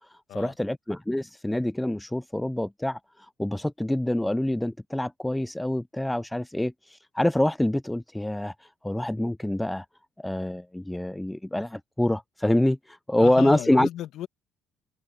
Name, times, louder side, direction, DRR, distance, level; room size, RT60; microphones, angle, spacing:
voice 1, 0.1-9.9 10.2-13.9, left 1 dB, 5° left, 0.4 m, -26 dB
voice 2, 13.2-14.3, left 12 dB, 70° left, 1.8 m, -34 dB
supercardioid pair, 70°, 0 cm